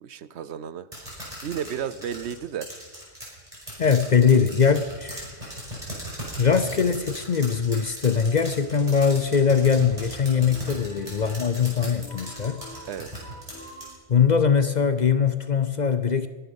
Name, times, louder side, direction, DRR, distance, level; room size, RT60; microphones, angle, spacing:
voice 1, 0.0-0.9 1.4-2.7 10.6-10.8 12.9-13.2, right 8 dB, 70° right, 16 dB, 0.9 m, -33 dB
sound 1, 0.9-13.9, equal, 30° right, 5.9 m, -38 dB
voice 2, 3.8-5.6 6.4-12.6 14.1-16.3, left 6 dB, 50° left, 11 dB, 0.6 m, -21 dB
sound 2, 8.2-8.6 9.0-13.9, left 1 dB, 65° left, 2.5 m, -47 dB
21.5 x 10.0 x 5.4 m, 1.4 s
omnidirectional pair, 1.2 m